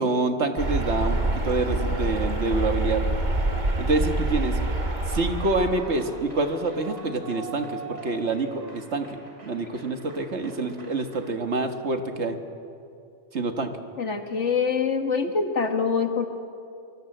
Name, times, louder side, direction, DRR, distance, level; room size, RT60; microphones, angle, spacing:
voice 1, 0.0-3.0 3.8-4.6 5.1-12.4 13.3-13.7, right 3 dB, 70° right, 6 dB, 1.9 m, -27 dB
sound 1, 0.6-5.7, right 1 dB, 40° right, 2.0 m, -26 dB
Clapping / Cheering / Applause, 4.5-11.9, right 3 dB, 85° right, 3.3 m, -44 dB
voice 2, 14.0-16.3, left 5 dB, 85° left, 6 dB, 2.0 m, -25 dB
24.5 x 23.5 x 7.9 m, 2.5 s
omnidirectional pair, 1.2 m